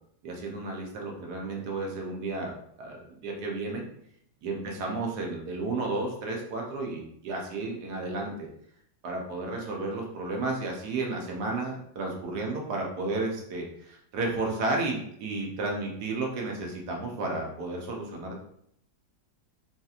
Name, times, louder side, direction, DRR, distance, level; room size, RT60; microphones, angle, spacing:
voice 1, 0.2-3.8 4.4-8.5 9.0-18.5, right 2 dB, 70° right, 0 dB, 1.2 m, -32 dB
3.2 x 2.8 x 2.4 m, 0.70 s
omnidirectional pair, 1.9 m